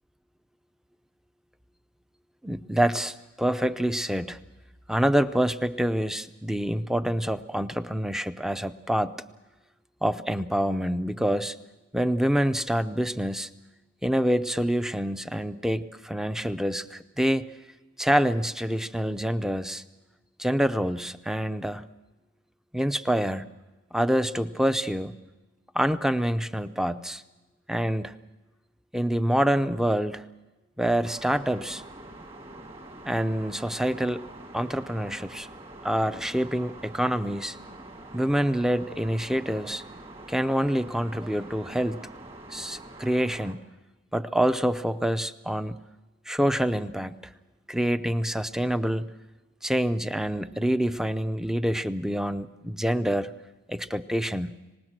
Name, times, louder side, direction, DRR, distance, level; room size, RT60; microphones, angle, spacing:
voice 1, 2.4-4.4 4.9-9.2 10.0-11.6 11.9-13.5 14.0-17.5 18.0-19.8 20.4-21.9 22.7-23.4 23.9-25.1 25.7-27.2 27.7-28.2 28.9-30.3 30.8-31.8 33.0-34.3 34.5-35.5 35.8-37.6 38.1-39.8 40.3-42.1 42.5-43.6 44.1-45.8 46.3-47.1 47.7-49.1 49.6-53.3 53.7-54.6, equal, ahead, 12 dB, 0.6 m, -26 dB
sound 1, 31.0-43.5, right 2 dB, 30° right, 2.0 m, -45 dB
24.5 x 20.0 x 6.2 m, 1.1 s
head